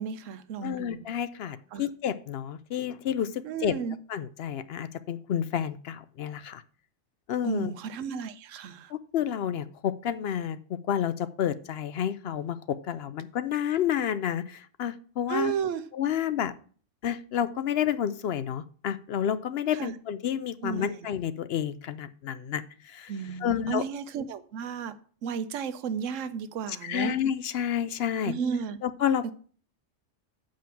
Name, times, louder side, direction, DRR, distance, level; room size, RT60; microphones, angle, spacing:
voice 1, 0.0-1.1 1.4-1.9 3.4-4.0 7.4-8.9 15.3-15.8 19.7-19.9 20.6-21.0 23.1-24.9 25.2-27.1 28.2-28.8, right 7 dB, 85° right, 11 dB, 1.0 m, -33 dB
voice 2, 0.6-3.7 4.1-6.6 7.3-7.7 8.9-15.5 15.9-16.5 17.0-23.1 23.4-23.8 26.8-28.3 28.8-29.3, left 9 dB, 65° left, 14 dB, 0.7 m, -30 dB
7.5 x 5.1 x 6.9 m, 0.43 s
omnidirectional pair, 1.3 m